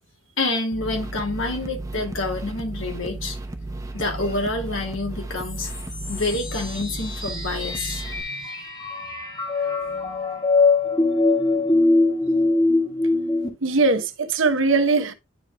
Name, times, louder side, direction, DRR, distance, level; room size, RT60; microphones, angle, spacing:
voice 1, 0.4-3.4 3.9-5.8 6.1-8.0, left 2 dB, 90° left, 2.4 m, -27 dB
sound 1, 0.7-8.2, right 2 dB, 15° right, 0.8 m, -34 dB
sound 2, 5.4-13.5, left 3 dB, 20° left, 1.9 m, -23 dB
voice 2, 9.6-10.3 13.6-15.1, right 3 dB, 85° right, 1.0 m, -22 dB
9.9 x 5.0 x 2.3 m
head